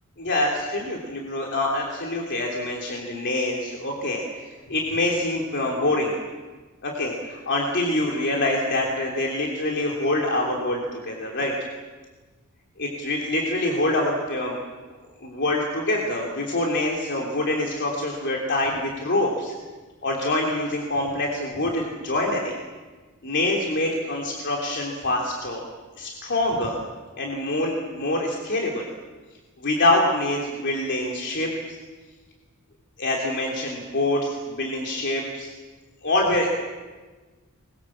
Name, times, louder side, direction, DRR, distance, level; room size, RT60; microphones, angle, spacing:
voice 1, 0.2-6.1 6.8-11.5 12.8-14.6 15.2-19.5 20.0-22.5 23.2-25.6 26.0-26.8 27.1-28.9 29.6-31.8 33.0-35.5 36.0-36.5, left 1 dB, 55° left, -1 dB, 3.2 m, -25 dB
25.5 x 22.0 x 7.4 m, 1.4 s
head